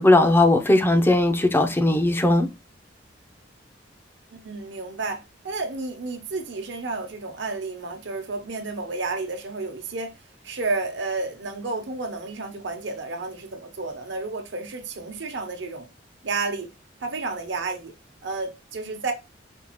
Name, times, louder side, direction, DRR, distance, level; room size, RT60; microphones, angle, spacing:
voice 1, 0.0-2.5, left 2 dB, 10° left, 0.5 m, -18 dB
voice 2, 4.3-10.2 10.4-15.9 16.2-16.7 17.0-17.9 18.2-19.1, right 3 dB, 65° right, 0.8 m, -31 dB
5.2 x 2.4 x 3.0 m
head